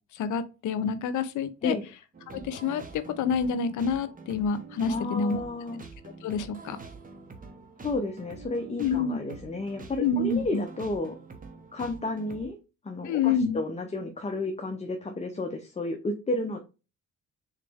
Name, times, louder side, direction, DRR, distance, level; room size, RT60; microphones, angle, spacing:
voice 1, 0.1-1.8 2.3-5.4 6.2-6.8 8.8-9.2 10.0-10.6 13.0-13.6, left 5 dB, 75° left, 0.7 m, -28 dB
sound 1, 2.1-12.5, right 4 dB, 30° right, 0.9 m, -46 dB
voice 2, 4.9-5.8 7.8-11.2 11.7-12.6 12.8-16.6, left 2 dB, 20° left, 0.6 m, -32 dB
3.9 x 3.2 x 3.4 m
cardioid pair, 90°, 30 cm